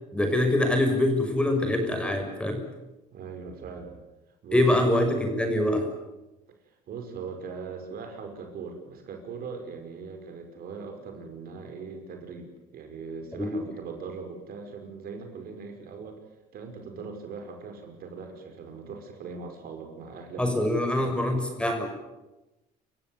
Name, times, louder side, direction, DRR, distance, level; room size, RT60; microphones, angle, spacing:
voice 1, 0.1-2.6 4.5-5.9 13.4-13.5 20.4-21.9, left 1 dB, 5° left, 4 dB, 6.2 m, -24 dB
voice 2, 3.1-4.0 4.4-4.9 6.9-16.2 16.5-20.5 21.0-21.5, right 5 dB, 60° right, 4 dB, 5.6 m, -40 dB
28.5 x 15.5 x 9.5 m, 1.0 s
cardioid pair, 110°, 17 cm